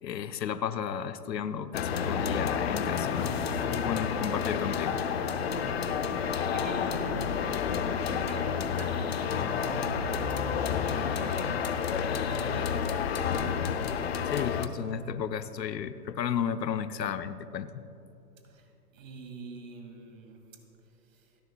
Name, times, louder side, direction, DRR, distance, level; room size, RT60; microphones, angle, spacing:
voice 1, 0.0-5.0 14.2-17.8, left 8 dB, 80° left, 11 dB, 0.8 m, -33 dB
sound 1, 1.7-14.7, left 7 dB, 40° left, 0.6 m, -30 dB
sound 2, 3.1-11.9, right 2 dB, 20° right, 1.5 m, -46 dB
voice 2, 4.3-4.7 5.3-13.6 15.8-16.0 18.4-21.4, right 3 dB, 50° right, 4 dB, 2.2 m, -45 dB
28.5 x 11.0 x 2.3 m, 2.9 s
hypercardioid pair, 155°, 49 cm